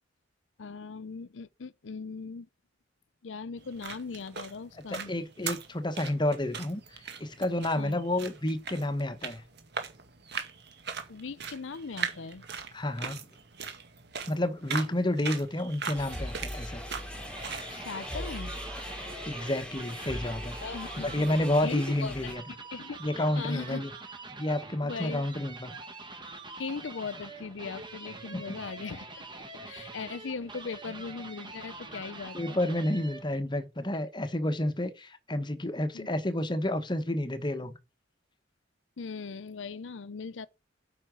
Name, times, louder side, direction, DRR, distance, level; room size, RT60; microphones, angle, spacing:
voice 1, 0.6-2.5 3.2-5.1 7.8-8.0 11.1-12.4 17.7-18.5 20.6-21.3 21.6-22.2 22.5-23.9 24.8-25.3 26.6-29.2 29.7-32.6 35.9-36.1 39.0-40.5, left 5 dB, 70° left, 0.6 m, -39 dB
sound 1, 3.6-17.7, right 6 dB, 60° right, 2.0 m, -40 dB
voice 2, 4.9-9.4 12.7-13.3 14.3-16.8 19.3-20.5 21.0-22.4 23.0-23.9 24.3-25.8 28.3-28.4 29.6-29.7 32.3-37.8, left 1 dB, 25° left, 1.0 m, -30 dB
sound 2, 15.9-22.3, equal, 5° left, 3.3 m, -40 dB
sound 3, 16.9-33.4, right 3 dB, 25° right, 1.6 m, -45 dB
8.7 x 5.8 x 6.1 m
head